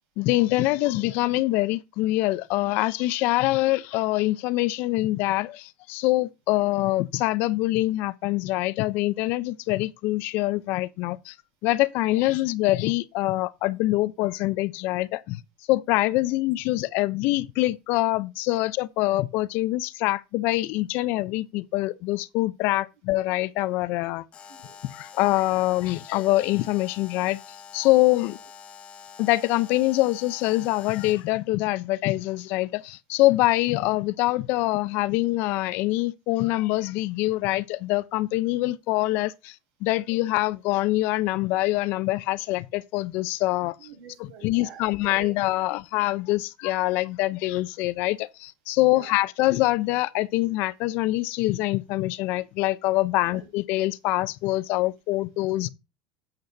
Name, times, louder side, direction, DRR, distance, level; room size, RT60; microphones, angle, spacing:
voice 1, 0.2-11.3 11.6-15.4 15.7-24.2 24.9-27.4 27.7-28.4 29.2-39.5 39.8-43.8 44.2-55.7, left 18 dB, 60° left, 0.6 m, -24 dB
Alarm, 24.3-31.3, left 6 dB, 30° left, 1.4 m, -46 dB
voice 2, 24.5-24.8 43.8-45.4 48.9-49.2 53.2-53.5, right 8 dB, 65° right, 6.0 m, -46 dB
10.5 x 7.7 x 2.7 m
supercardioid pair, 135°, 4 cm